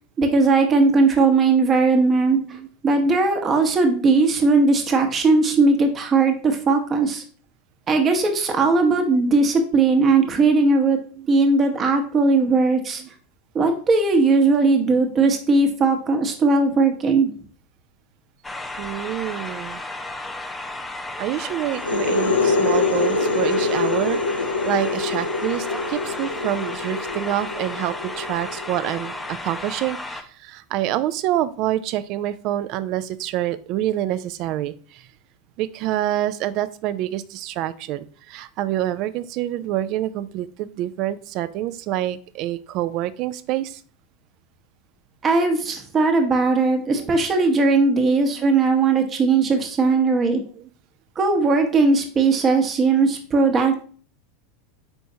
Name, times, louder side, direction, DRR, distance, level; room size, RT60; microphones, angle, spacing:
voice 1, 0.2-2.6 2.8-7.2 7.9-11.0 11.3-13.0 13.5-17.3 45.2-50.4 51.2-53.8, right 3 dB, 30° right, 4 dB, 0.9 m, -18 dB
voice 2, 2.0-2.7 11.2-11.3 13.0-13.1 14.7-15.4 18.8-19.8 21.2-35.1 35.6-43.8 46.8-47.1 48.0-48.6 49.2-49.3 50.6-50.7, right 13 dB, 50° right, 15 dB, 0.3 m, -27 dB
sound 1, 18.4-30.2, left 2 dB, 10° left, 0.5 m, -33 dB
sound 2, 21.7-29.3, left 3 dB, 90° left, 0.4 m, -24 dB
4.4 x 4.2 x 2.8 m, 0.44 s
hypercardioid pair, 90°, 0 cm